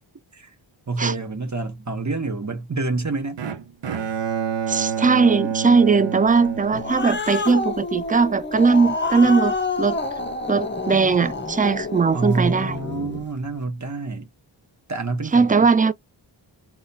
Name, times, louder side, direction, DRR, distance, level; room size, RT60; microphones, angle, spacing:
voice 1, 0.9-3.4 12.1-14.3 14.9-15.7, right 3 dB, 35° right, 1.0 m, -27 dB
Bowed string instrument, 3.4-7.6, right 7 dB, 60° right, 0.8 m, -28 dB
voice 2, 4.7-10.0 10.5-12.8 15.3-15.9, right 4 dB, 20° right, 0.3 m, -19 dB
Growling, 6.5-13.2, left 3 dB, 25° left, 0.7 m, -28 dB
3.8 x 2.2 x 4.0 m
wide cardioid pair, 75°, 48 cm